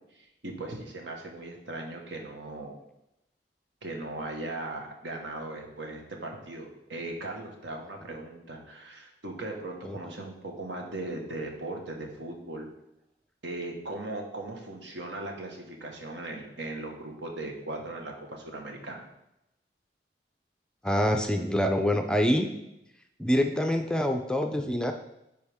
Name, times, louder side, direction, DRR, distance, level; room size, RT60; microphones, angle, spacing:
voice 1, 0.1-2.8 3.8-12.7 13.4-19.0, right 2 dB, 75° right, 1 dB, 1.4 m, -38 dB
voice 2, 20.8-22.5 23.2-24.9, equal, 5° left, 5 dB, 0.4 m, -25 dB
9.7 x 4.8 x 3.6 m, 0.86 s
head